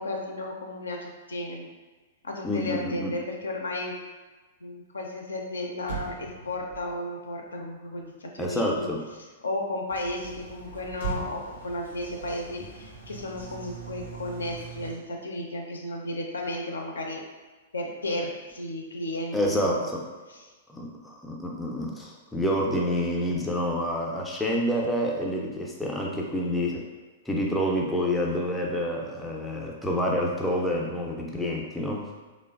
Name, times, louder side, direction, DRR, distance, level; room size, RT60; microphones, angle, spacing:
voice 1, 0.0-1.7 2.2-4.0 4.6-8.9 9.4-17.2 17.7-19.9 20.3-20.4, left 1 dB, 70° left, 1 dB, 0.4 m, -34 dB
voice 2, 2.4-3.1 8.4-9.0 19.3-20.0 20.7-26.8 27.3-32.0, equal, 5° left, -2 dB, 0.4 m, -28 dB
Motor vehicle (road), 5.4-5.5 5.8-9.3 10.9-13.5 13.8-14.1, right 5 dB, 55° right, 0.4 m, -40 dB
Bird vocalization bird call bird song, 9.9-14.9, right 5 dB, 85° right, 0.9 m, -44 dB
3.0 x 2.1 x 2.3 m, 1.3 s
figure-of-eight pair, 105°, 0 cm